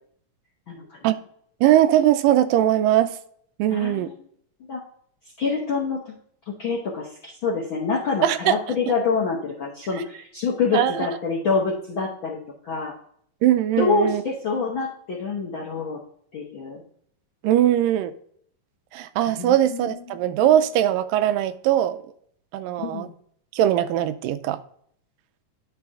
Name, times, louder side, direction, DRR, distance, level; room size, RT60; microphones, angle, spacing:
voice 1, 0.7-1.0 3.7-4.1 4.7-4.8 5.4-6.0 6.6-12.4 12.6-12.9 13.8-16.0 16.3-16.8 19.3-20.0 22.8-23.1, left 4 dB, 70° left, -2 dB, 1.2 m, -26 dB
voice 2, 1.6-3.1 3.6-4.1 8.2-8.5 10.7-11.1 13.4-14.2 17.4-18.1 18.9-22.0 22.5-23.1 23.5-24.6, right 12 dB, 90° right, 11 dB, 2.3 m, -20 dB
10.0 x 4.8 x 3.6 m, 0.62 s
omnidirectional pair, 3.8 m